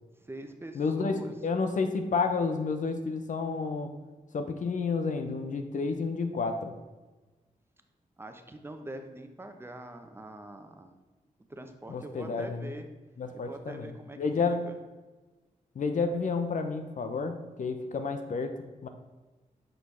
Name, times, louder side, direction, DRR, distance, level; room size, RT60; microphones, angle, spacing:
voice 1, 0.2-1.3 8.2-10.9 11.5-12.9 13.3-14.2 14.4-14.8, right 1 dB, 15° right, 6 dB, 0.9 m, -44 dB
voice 2, 0.7-3.9 4.3-6.7 11.9-12.7 13.2-13.9 14.2-14.7 15.8-18.9, left 4 dB, 65° left, 6 dB, 0.7 m, -30 dB
6.2 x 5.1 x 5.7 m, 1.2 s
wide cardioid pair, 90°, 14 cm